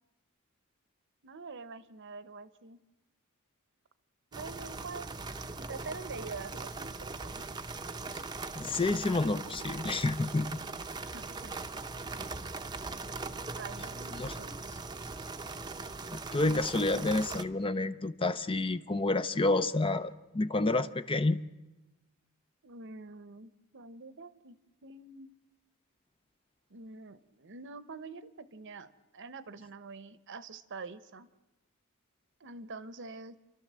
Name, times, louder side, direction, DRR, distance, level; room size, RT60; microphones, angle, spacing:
voice 1, 1.2-2.8 4.3-5.1 5.7-7.4 11.1-11.5 13.5-14.6 22.6-24.6 24.8-25.3 26.7-31.3 32.4-33.4, right 4 dB, 60° right, 14 dB, 0.9 m, -45 dB
sound 1, 4.3-17.4, right 3 dB, 20° right, 0.7 m, -40 dB
voice 2, 8.5-10.6 14.1-14.3 16.1-21.4, left 2 dB, 25° left, 12 dB, 0.6 m, -29 dB
29.5 x 12.5 x 7.6 m, 1.1 s
head